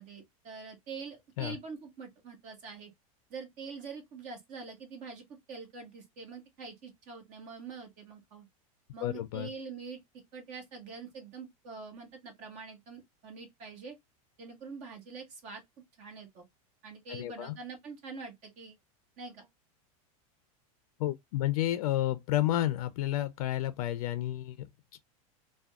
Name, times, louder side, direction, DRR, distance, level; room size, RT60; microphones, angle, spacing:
voice 1, 0.0-2.9 3.3-5.2 5.5-8.5 8.9-10.0 10.3-14.0 14.4-15.6 16.0-16.4 16.8-18.8 19.2-19.5, right 4 dB, 40° right, 1.3 m, -45 dB
voice 2, 9.0-9.5 17.1-17.5 21.0-25.0, left 13 dB, 75° left, 0.4 m, -31 dB
3.4 x 2.2 x 2.3 m
supercardioid pair, 150°, 19 cm